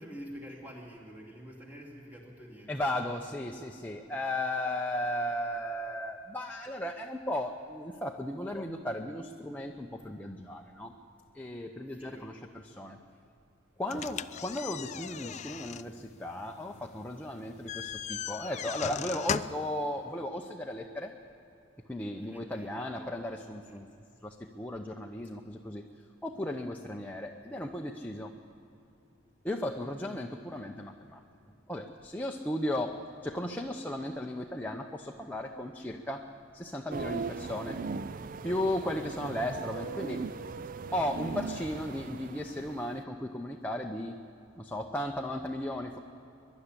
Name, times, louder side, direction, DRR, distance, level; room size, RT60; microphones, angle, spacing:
voice 1, 0.0-2.7 11.9-12.3 22.2-22.9 23.6-23.9, equal, 10° right, -2 dB, 2.7 m, -47 dB
voice 2, 2.7-10.9 11.3-13.0 13.8-21.1 21.9-23.9 24.2-25.8 26.2-28.3 29.4-31.2 31.7-36.3 36.5-37.8 38.4-40.2 40.9-44.2 44.6-46.0, left 1 dB, 10° left, 1 dB, 0.7 m, -35 dB
sound 1, 13.9-19.7, left 8 dB, 35° left, 0.4 m, -38 dB
sound 2, 36.9-43.0, right 4 dB, 45° right, 0.4 m, -39 dB
23.0 x 11.5 x 9.8 m, 2.9 s
head